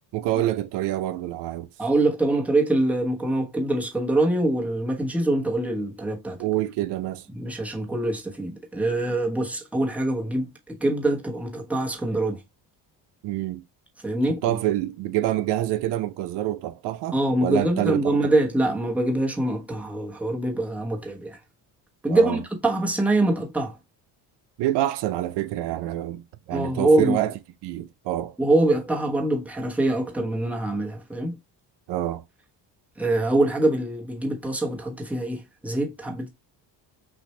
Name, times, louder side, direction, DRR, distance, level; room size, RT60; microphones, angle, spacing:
voice 1, 0.1-1.7 6.4-7.3 13.2-13.6 14.3-18.2 22.1-22.4 24.6-27.3 27.6-28.4 31.9-32.2, right 14 dB, 75° right, 0.7 m, -27 dB
voice 2, 1.8-6.4 7.3-12.4 14.0-14.6 17.1-21.4 22.0-23.8 26.5-27.2 28.4-31.4 33.0-36.3, right 2 dB, 5° right, 1.2 m, -24 dB
6.1 x 2.6 x 3.2 m
cardioid pair, 130°, 41 cm